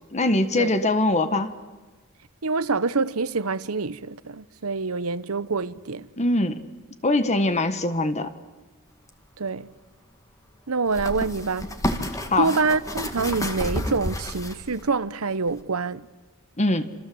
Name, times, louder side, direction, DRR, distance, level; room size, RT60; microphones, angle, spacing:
voice 1, 0.1-1.5 6.2-6.6 7.0-8.3 12.3-12.5 16.6-16.9, left 2 dB, 30° left, 1.4 m, -22 dB
voice 2, 2.4-6.1 9.4-9.7 10.7-11.7 12.4-16.0, right 4 dB, 80° right, 1.0 m, -26 dB
sound 1, 9.1-9.2 10.9-14.9 15.5-15.6, left 1 dB, 15° left, 2.0 m, -30 dB
28.0 x 26.5 x 7.9 m
head